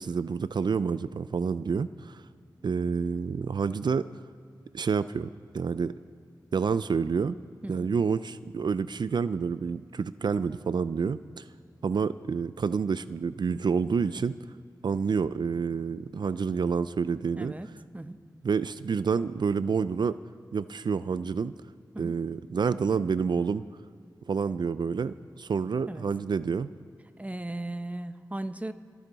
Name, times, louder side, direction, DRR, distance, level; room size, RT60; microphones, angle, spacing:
voice 1, 0.0-2.2 2.6-4.1 4.7-5.9 6.5-7.4 7.7-11.4 11.8-14.3 14.8-17.5 18.4-20.2 20.5-21.5 22.0-23.6 24.3-26.7, right 5 dB, 70° right, 15 dB, 0.4 m, -28 dB
voice 2, 7.6-7.9 17.4-18.2 21.9-22.2 25.9-26.0 27.2-28.7, right 1 dB, 20° right, 11 dB, 0.7 m, -37 dB
29.0 x 9.9 x 4.0 m, 2.3 s
wide cardioid pair, 75°, 8 cm